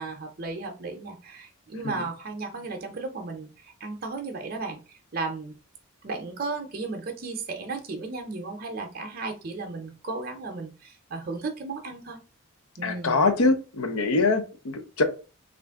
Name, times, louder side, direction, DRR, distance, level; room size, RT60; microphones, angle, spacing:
voice 1, 0.0-5.5 6.0-12.2 12.8-13.2, right 3 dB, 45° right, 0.6 m, -35 dB
voice 2, 12.8-15.0, left 3 dB, 90° left, 0.6 m, -23 dB
3.2 x 2.5 x 3.4 m
head